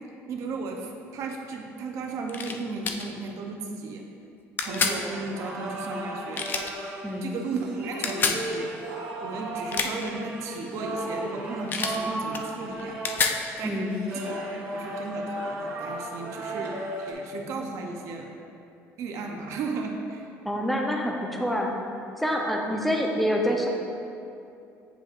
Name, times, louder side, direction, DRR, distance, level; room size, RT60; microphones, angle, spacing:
voice 1, 0.3-4.1 4.6-6.5 7.2-8.8 9.2-13.0 13.6-18.3 19.0-20.3, right 3 dB, 60° right, 2 dB, 0.7 m, -35 dB
sound 1, 2.3-2.6 2.8-3.1 4.6-5.0 6.3-6.7 8.0-8.4 9.6-10.1 11.7-12.0 12.3-13.4, left 5 dB, 35° left, 0.4 m, -27 dB
sound 2, 4.6-17.1, right 1 dB, 85° right, 1.1 m, -35 dB
voice 2, 7.0-7.3 13.6-14.0 20.4-21.7 22.2-23.7, equal, ahead, 0 dB, 0.7 m, -26 dB
8.6 x 5.1 x 2.5 m, 2.6 s
cardioid pair, 125°, 6 cm